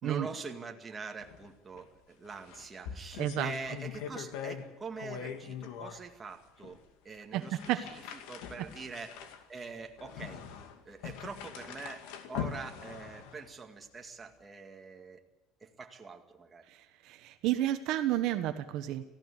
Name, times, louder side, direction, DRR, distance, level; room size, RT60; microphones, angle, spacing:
voice 1, 0.0-8.0 8.3-9.2 9.5-10.5 10.8-12.0 12.3-15.2 15.6-16.7, right 4 dB, 20° right, 3 dB, 2.1 m, -44 dB
sound 1, 1.2-1.5 1.7-1.8 2.3-4.7 5.0-6.0 6.6-6.8 7.4-13.5, left 8 dB, 80° left, 2.3 m, -42 dB
voice 2, 3.2-3.5 7.3-7.9 8.6-8.7 16.7-19.0, right 13 dB, 60° right, 8 dB, 1.2 m, -31 dB
18.5 x 15.5 x 9.8 m, 1.1 s
cardioid pair, 140°, 0 cm